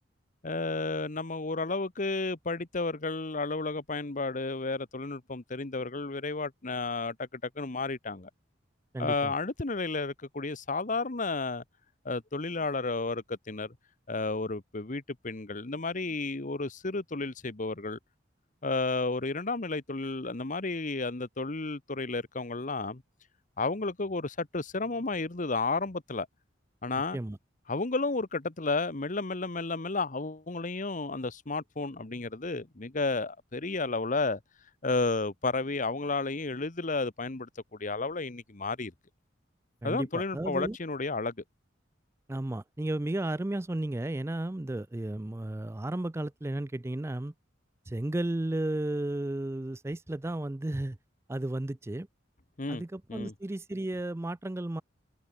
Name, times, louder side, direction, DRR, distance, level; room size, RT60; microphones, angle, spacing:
voice 1, 0.4-8.3 9.0-11.6 12.0-13.7 14.1-18.0 18.6-23.0 23.6-26.3 26.8-27.2 27.7-34.4 34.8-38.9 39.8-41.3 52.6-52.8 53.1-53.3, left 3 dB, 45° left, 1.2 m, -32 dB
voice 2, 8.9-9.3 27.1-27.4 39.8-40.8 42.3-47.3 47.9-51.0 51.3-52.1 52.7-54.8, right 1 dB, 15° right, 0.4 m, -33 dB
head